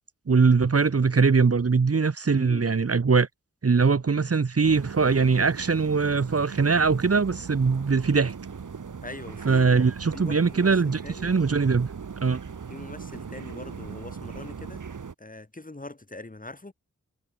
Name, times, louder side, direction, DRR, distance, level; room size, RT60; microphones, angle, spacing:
voice 1, 0.3-3.3 3.6-8.3 9.4-11.9 12.2-12.4, right 5 dB, 50° right, 1.9 m, -21 dB
voice 2, 2.4-2.7 9.0-9.8 10.1-11.3 12.7-14.8 15.2-16.7, left 2 dB, 25° left, 5.5 m, -42 dB
sound 1, 4.6-15.1, right 6 dB, 75° right, 5.2 m, -39 dB
cardioid pair, 65°, 31 cm